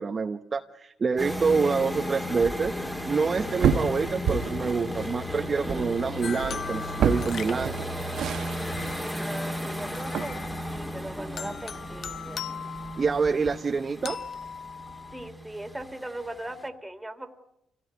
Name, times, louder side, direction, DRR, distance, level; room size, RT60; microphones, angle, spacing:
voice 1, 0.0-2.7 3.1-7.8 13.0-14.2, right 5 dB, 35° right, 5 dB, 0.9 m, -27 dB
sound 1, 1.2-16.7, left 1 dB, 10° left, 2.2 m, -35 dB
sound 2, 3.2-10.4, right 7 dB, 70° right, 1.5 m, -31 dB
sound 3, 6.2-9.3 9.9-10.9 11.4-13.5 14.1-15.3, left 7 dB, 55° left, 1.1 m, -40 dB
voice 2, 9.2-12.4 15.1-17.3, right 1 dB, 10° right, 7 dB, 2.5 m, -39 dB
26.0 x 17.0 x 9.5 m, 0.82 s
cardioid pair, 90°, 0 cm